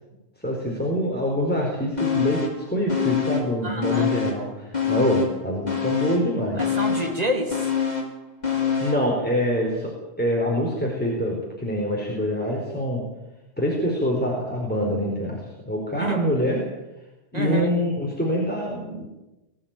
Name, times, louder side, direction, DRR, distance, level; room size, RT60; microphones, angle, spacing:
voice 1, 0.4-6.6 8.8-13.0 13.6-15.4 15.7-16.6 17.3-19.1, equal, 10° left, -2 dB, 4.6 m, -25 dB
sound 1, 2.0-2.6 2.9-4.5 4.7-9.1 9.5-9.6, left 7 dB, 40° left, 4.4 m, -26 dB
voice 2, 3.6-4.1 6.6-7.7 16.0-16.2 17.3-17.7, equal, 35° right, 3 dB, 3.3 m, -28 dB
22.0 x 15.0 x 9.1 m, 1.0 s
omnidirectional pair, 1.2 m